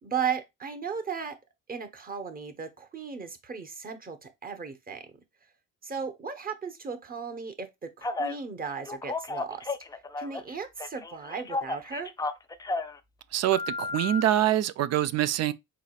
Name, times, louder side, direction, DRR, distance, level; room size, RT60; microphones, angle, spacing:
voice 1, 0.0-1.4 1.7-5.1 5.8-9.8 10.2-12.1, right 6 dB, 25° right, 1.1 m, -36 dB
Telephone, 8.0-8.4 8.9-10.5 10.8-13.0 13.5-14.2, left 3 dB, 10° left, 0.5 m, -33 dB
voice 2, 13.3-15.5, right 12 dB, 45° right, 0.5 m, -25 dB
4.9 x 4.0 x 2.4 m
cardioid pair, 105°, 35 cm